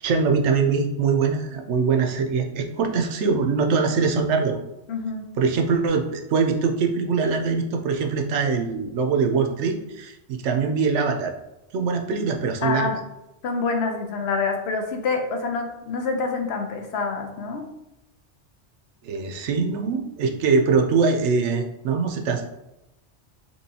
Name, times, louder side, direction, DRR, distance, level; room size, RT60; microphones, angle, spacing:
voice 1, 0.0-4.6 5.4-11.3 11.7-12.9 19.0-22.5, right 5 dB, 80° right, 4 dB, 0.9 m, -23 dB
voice 2, 4.9-5.3 12.6-13.0 13.4-17.7, left 4 dB, 70° left, 4 dB, 0.8 m, -26 dB
4.4 x 2.9 x 2.7 m, 0.91 s
omnidirectional pair, 1.2 m